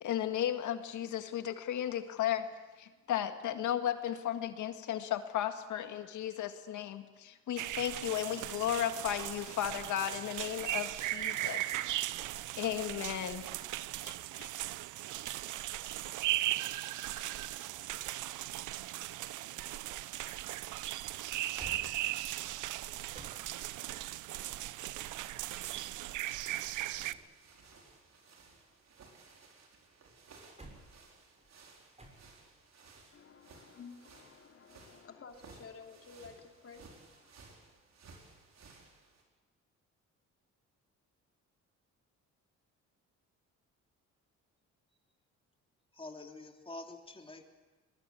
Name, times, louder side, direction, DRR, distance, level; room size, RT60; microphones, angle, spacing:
voice 1, 0.0-2.5 2.8-11.6 11.9-13.5 14.0-14.5, left 11 dB, 75° left, 2.0 m, -35 dB
sound 1, 7.6-27.1, right 15 dB, 80° right, 0.7 m, -38 dB
sound 2, 21.6-24.0 25.7-27.5 27.8-29.5 30.0-32.6 35.2-35.6, right 2 dB, 20° right, 6.9 m, -58 dB
sound 3, 23.5-39.2, right 4 dB, 60° right, 5.3 m, -59 dB
voice 2, 33.1-37.5, left 5 dB, 50° left, 2.9 m, -53 dB
voice 3, 46.0-47.4, left 2 dB, 20° left, 3.2 m, -46 dB
22.5 x 21.0 x 8.4 m
cardioid pair, 90°, 30 cm